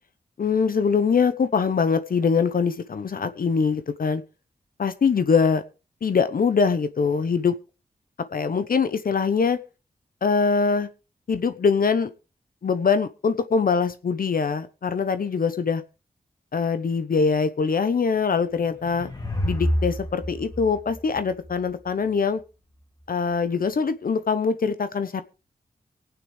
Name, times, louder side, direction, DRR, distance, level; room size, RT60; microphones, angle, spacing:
voice 1, 0.4-4.2 4.8-5.6 6.0-7.5 8.3-9.6 10.2-10.9 11.3-12.1 12.6-15.8 16.5-19.1 19.4-22.4 23.1-25.2, left 5 dB, 65° left, 12 dB, 0.9 m, -23 dB
sound 1, 18.5-21.9, equal, 25° left, 2.8 m, -29 dB
24.5 x 9.1 x 3.3 m, 0.32 s
cardioid pair, 45°, 16 cm